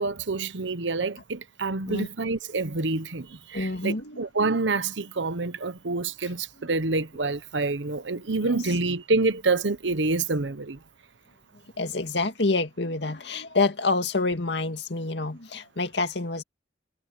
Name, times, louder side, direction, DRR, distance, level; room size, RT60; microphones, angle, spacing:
voice 1, 0.0-10.8, right 3 dB, 80° right, 1.0 m, -27 dB
voice 2, 3.5-4.2 4.5-4.6 6.6-6.7 8.4-8.8 11.8-16.4, left 3 dB, 70° left, 2.2 m, -27 dB
head